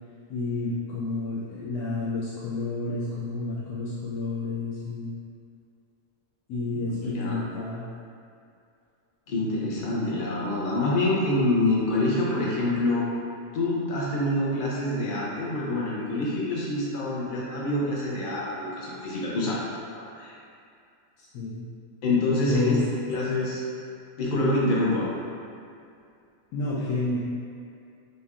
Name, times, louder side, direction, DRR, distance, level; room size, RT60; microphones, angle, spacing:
voice 1, 0.3-5.1 6.5-7.8 21.2-21.6 22.5-22.8 26.5-27.2, left 3 dB, 85° left, -8 dB, 1.1 m, -30 dB
voice 2, 7.0-7.4 9.3-13.1 13.5-19.6 19.9-20.3 22.0-22.8 23.1-23.6 24.2-25.1, left 2 dB, 45° left, -5 dB, 0.7 m, -26 dB
5.3 x 3.2 x 2.5 m, 2.4 s
omnidirectional pair, 1.6 m